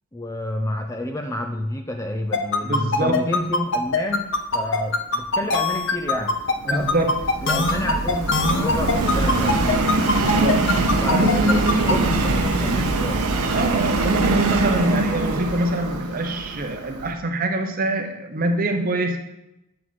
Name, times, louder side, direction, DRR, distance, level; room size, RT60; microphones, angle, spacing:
voice 1, 0.1-4.3 4.5-6.4 6.6-7.1 7.4-9.6 11.0-13.2, left 1 dB, 15° left, 4 dB, 0.4 m, -29 dB
sound 1, 2.3-11.9, left 3 dB, 55° left, 0.6 m, -21 dB
voice 2, 2.6-3.2 6.7-7.2 10.2-10.6 11.1-12.1 13.5-19.2, right 2 dB, 40° right, 4 dB, 0.7 m, -24 dB
Subway metro underground, 5.8-17.1, right 2 dB, 85° right, 0.8 m, -23 dB
7.6 x 4.5 x 4.1 m, 0.89 s
head